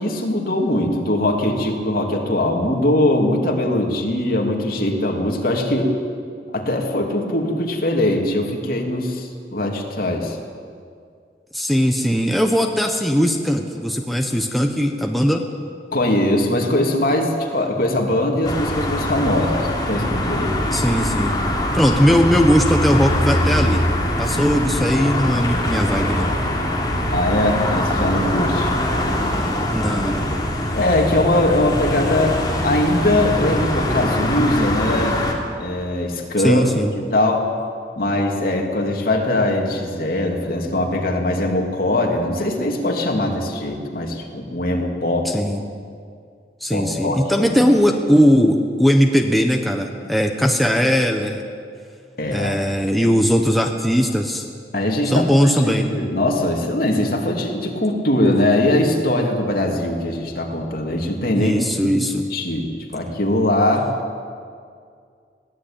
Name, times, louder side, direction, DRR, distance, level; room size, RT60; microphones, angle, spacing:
voice 1, 0.0-5.9 6.5-10.4 15.9-20.8 27.1-28.7 30.7-35.2 35.6-36.7 36.9-37.4 38.0-45.4 46.7-47.6 52.2-52.5 54.7-61.5 61.8-61.9 62.3-63.9, left 1 dB, 55° left, 1 dB, 3.0 m, -21 dB
voice 2, 11.5-15.4 20.7-21.4 21.7-23.8 24.2-26.3 29.7-30.3 36.4-36.9 45.2-45.6 46.6-51.4 52.3-54.4 55.1-55.9 61.3-62.3, equal, ahead, 2 dB, 1.1 m, -19 dB
sound 1, 18.4-35.3, left 1 dB, 25° left, 3.2 m, -22 dB
21.5 x 16.5 x 9.0 m, 2.2 s
head